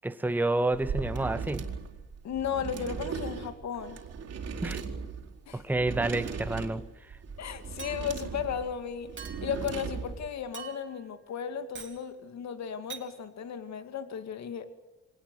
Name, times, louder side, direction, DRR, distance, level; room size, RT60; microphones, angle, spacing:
voice 1, 0.0-1.7 4.6-4.8 5.5-7.2, right 2 dB, 5° right, 0.9 m, -29 dB
sound 1, 0.7-10.3, right 5 dB, 55° right, 4.4 m, -38 dB
voice 2, 2.2-4.0 5.5-5.6 7.4-9.1 9.4-14.7, left 7 dB, 65° left, 2.4 m, -35 dB
Chink clink, 7.8-8.3 9.2-9.6 10.5-11.0 11.7-12.0 12.9-13.1, right 6 dB, 40° right, 3.6 m, -44 dB
24.5 x 19.0 x 8.2 m
cardioid pair, 90°, 30 cm